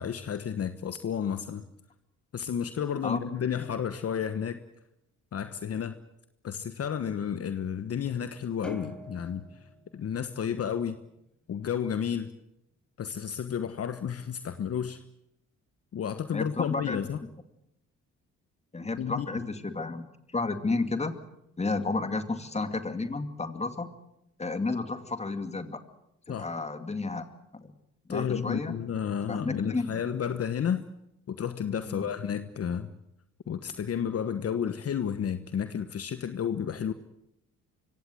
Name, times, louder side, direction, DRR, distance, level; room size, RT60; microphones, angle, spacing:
voice 1, 0.0-1.6 2.3-4.6 5.3-5.9 6.4-9.6 9.9-11.0 11.5-12.3 13.0-15.0 15.9-17.2 19.0-19.3 26.3-26.5 28.1-30.8 31.3-32.9 33.5-36.9, left 8 dB, 50° left, 10 dB, 1.3 m, -31 dB
sound 1, 8.6-11.2, left 2 dB, 5° left, 3.9 m, -45 dB
voice 2, 16.3-17.0 18.7-21.1 21.6-23.9 24.4-25.8 26.3-27.7 28.1-28.7 29.3-30.0 31.9-32.1, left 3 dB, 20° left, 9 dB, 2.4 m, -32 dB
24.5 x 17.0 x 7.8 m, 0.83 s
cardioid pair, 90°, 30 cm